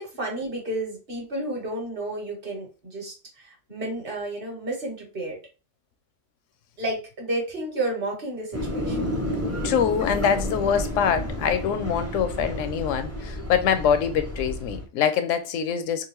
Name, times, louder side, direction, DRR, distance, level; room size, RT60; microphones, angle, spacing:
voice 1, 0.0-5.4 6.8-9.1, right 1 dB, 45° right, 1.4 m, -31 dB
sound 1, 8.5-14.9, left 1 dB, 20° right, 0.4 m, -31 dB
voice 2, 9.6-16.1, left 7 dB, 80° left, 0.9 m, -24 dB
3.8 x 2.5 x 3.0 m
omnidirectional pair, 1.3 m